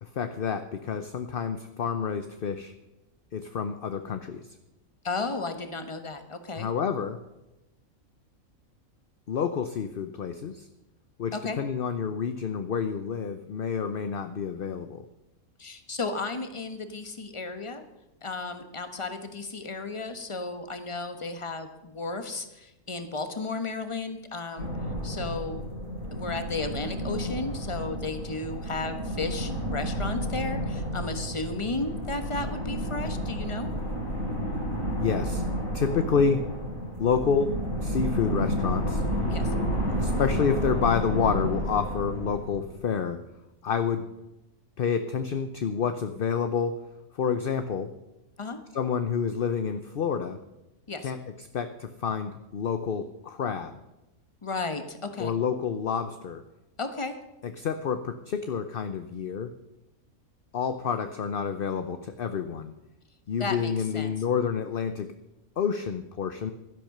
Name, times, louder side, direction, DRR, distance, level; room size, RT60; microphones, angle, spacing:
voice 1, 0.0-2.7 3.3-4.4 6.6-7.2 9.3-10.7 11.2-15.0 35.0-35.4 35.7-36.5 37.0-37.6 37.8-39.0 40.0-43.2 43.6-44.1 44.8-46.8 47.1-47.9 48.7-50.4 51.0-53.7 55.2-56.4 57.4-59.5 60.5-62.7 63.3-65.1 65.6-66.5, left 6 dB, 50° left, 9 dB, 0.8 m, -29 dB
voice 2, 5.0-6.7 11.3-11.6 15.6-17.8 18.2-24.7 25.0-25.6 26.1-33.7 39.3-39.5 48.4-48.6 50.9-51.1 54.4-55.3 56.8-57.2 63.4-64.1, left 3 dB, 25° left, 8 dB, 1.2 m, -34 dB
sound 1, 24.6-43.0, equal, 65° left, 4.8 m, -31 dB
12.0 x 10.5 x 6.6 m, 0.95 s
omnidirectional pair, 1.5 m